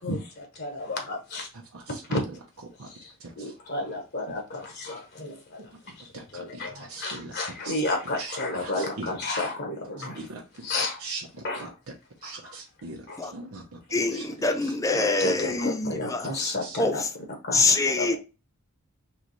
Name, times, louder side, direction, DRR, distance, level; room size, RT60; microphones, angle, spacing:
voice 1, 0.0-1.5 2.1-2.2 3.4-5.6 6.3-6.7 7.0-10.2 10.7-11.0 11.4-11.6 15.2-17.0 17.4-17.6 18.0-18.2, left 2 dB, 50° left, 1.0 m, -31 dB
voice 2, 1.5-3.6 4.3-4.4 5.7-7.8 8.1-9.3 10.0-10.7 11.0-11.9 12.2-14.7 15.2-16.0 16.4-16.8, right 3 dB, 90° right, 0.8 m, -42 dB
voice 3, 13.9-17.1 17.5-18.2, left 3 dB, 15° left, 0.5 m, -25 dB
3.2 x 3.1 x 4.0 m
head